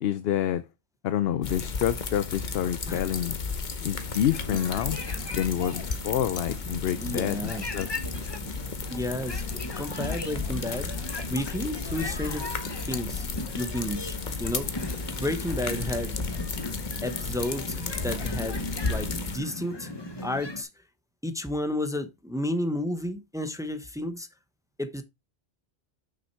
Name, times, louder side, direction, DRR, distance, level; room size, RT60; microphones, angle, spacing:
voice 1, 0.0-0.6 1.0-3.4 3.8-5.0 5.4-7.9, left 10 dB, 70° left, 0.8 m, -28 dB
sound 1, 1.4-19.4, left 4 dB, 45° left, 1.0 m, -34 dB
sound 2, 4.0-20.6, left 2 dB, 25° left, 1.1 m, -38 dB
voice 2, 7.0-7.7 8.9-10.9 11.3-13.3 13.5-14.7 15.2-16.2 17.0-19.9 20.2-20.7 21.2-24.3 24.8-25.0, left 1 dB, 5° right, 0.8 m, -32 dB
6.2 x 5.8 x 4.5 m
omnidirectional pair, 1.1 m